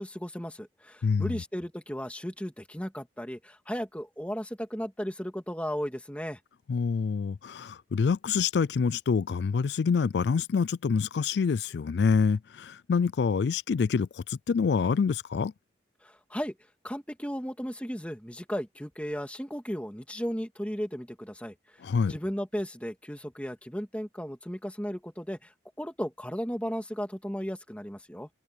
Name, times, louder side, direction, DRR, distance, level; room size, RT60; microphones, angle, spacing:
voice 1, 0.0-6.4 16.0-16.5 16.8-21.5 22.1-28.3, equal, 5° left, 2.3 m, -35 dB
voice 2, 1.0-1.4 6.7-15.5 21.8-22.1, left 5 dB, 70° left, 0.4 m, -26 dB
open air
head